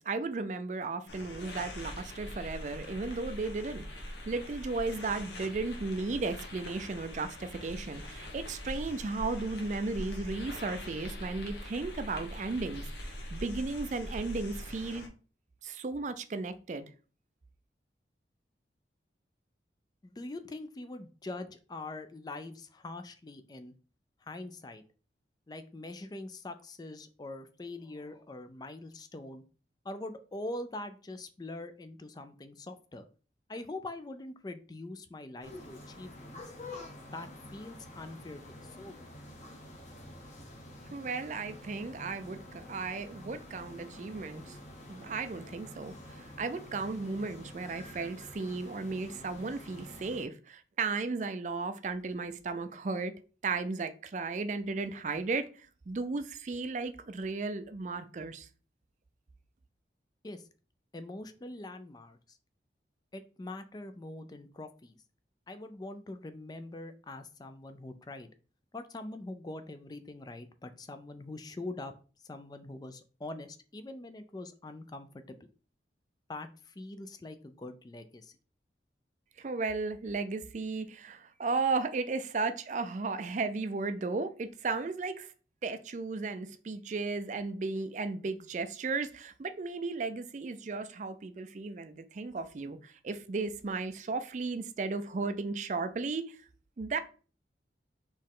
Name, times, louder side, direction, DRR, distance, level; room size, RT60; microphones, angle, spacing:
voice 1, 0.0-3.9 4.3-15.1 15.6-16.9 40.9-44.6 44.9-53.1 53.4-58.5 79.4-85.3 85.6-96.4 96.8-97.0, right 3 dB, 45° right, 0.4 m, -35 dB
sound 1, 1.1-15.1, left 1 dB, 80° left, 1.2 m, -42 dB
voice 2, 20.0-23.7 24.2-24.8 25.5-29.4 29.8-33.0 33.5-36.4 37.1-39.0 60.2-60.4 60.9-62.4 63.1-65.0 65.5-68.3 68.7-71.9 72.2-75.4 76.3-78.3, left 2 dB, 25° left, 0.4 m, -43 dB
sound 2, 35.4-50.2, left 1 dB, 40° left, 1.1 m, -48 dB
4.3 x 3.0 x 3.7 m
head